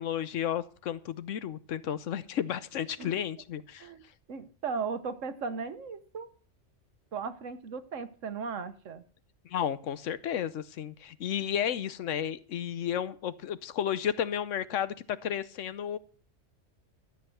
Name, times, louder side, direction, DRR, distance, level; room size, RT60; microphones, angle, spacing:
voice 1, 0.0-3.9 9.4-16.0, left 9 dB, 90° left, 15 dB, 1.1 m, -32 dB
voice 2, 4.3-6.3 7.1-9.0, right 5 dB, 85° right, 12 dB, 1.4 m, -36 dB
13.0 x 7.7 x 6.9 m, 0.42 s
omnidirectional pair, 1.3 m